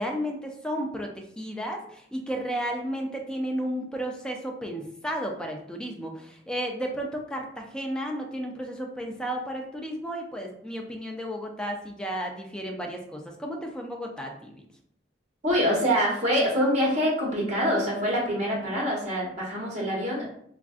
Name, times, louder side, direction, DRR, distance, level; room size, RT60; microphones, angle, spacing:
voice 1, 0.0-14.6 18.7-18.8, equal, 5° left, 1 dB, 0.4 m, -33 dB
voice 2, 15.4-20.2, equal, 40° right, -4 dB, 1.0 m, -25 dB
3.4 x 2.4 x 2.4 m, 0.67 s
head